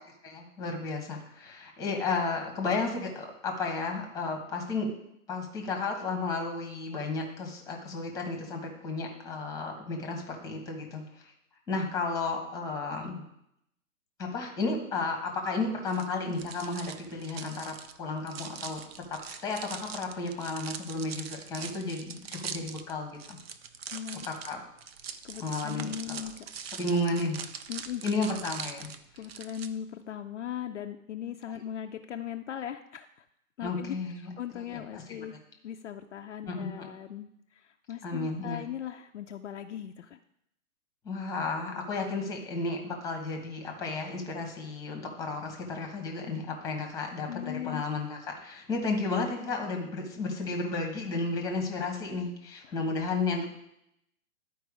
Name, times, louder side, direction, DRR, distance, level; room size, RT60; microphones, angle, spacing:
voice 1, 0.2-4.9 5.3-11.3 11.7-13.2 14.2-18.8 19.1-23.4 24.2-24.6 25.4-26.2 26.7-27.4 28.0-28.9 33.6-34.7 34.9-35.2 36.5-36.9 38.0-38.6 41.0-53.4, left 3 dB, 10° left, 2 dB, 1.1 m, -33 dB
sound 1, 15.9-29.7, right 7 dB, 45° right, 0.6 m, -42 dB
voice 2, 23.9-24.3 25.2-26.5 27.7-28.0 29.1-33.1 33.6-34.0 34.4-35.4 35.6-40.2 47.3-47.8 52.7-52.8, left 10 dB, 55° left, 5 dB, 0.5 m, -39 dB
11.5 x 4.6 x 4.8 m, 0.78 s
hypercardioid pair, 140°, 43 cm